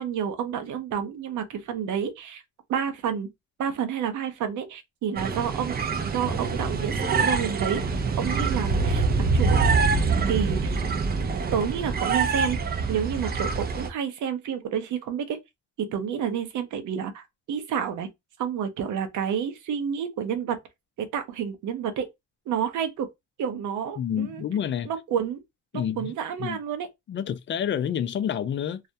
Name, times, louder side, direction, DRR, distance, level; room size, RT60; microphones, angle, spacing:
voice 1, 0.0-2.4 2.7-3.3 3.6-5.8 6.0-7.0 7.2-7.8 8.2-9.6 10.3-10.7 11.5-12.6 12.9-15.4 15.9-18.1 18.4-20.6 21.0-22.1 22.5-23.1 23.4-24.4 24.8-25.4 25.7-26.9, right 8 dB, 75° right, 0.7 m, -29 dB
sound 1, 5.2-13.9, right 4 dB, 30° right, 0.5 m, -25 dB
voice 2, 24.0-24.9 25.7-26.1 26.4-26.6 27.1-28.8, left 9 dB, 40° left, 0.4 m, -28 dB
2.3 x 2.0 x 2.7 m
cardioid pair, 90°, 30 cm